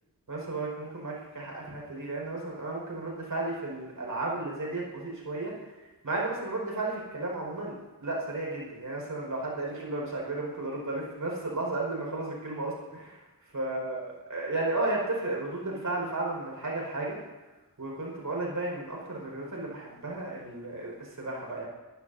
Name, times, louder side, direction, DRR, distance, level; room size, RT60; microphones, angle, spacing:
voice 1, 0.3-5.5 6.0-13.2 13.5-14.0 14.3-17.2 17.8-21.7, right 2 dB, 55° right, -3 dB, 5.5 m, -33 dB
25.0 x 15.5 x 2.8 m, 1.2 s
wide cardioid pair, 115°, 36 cm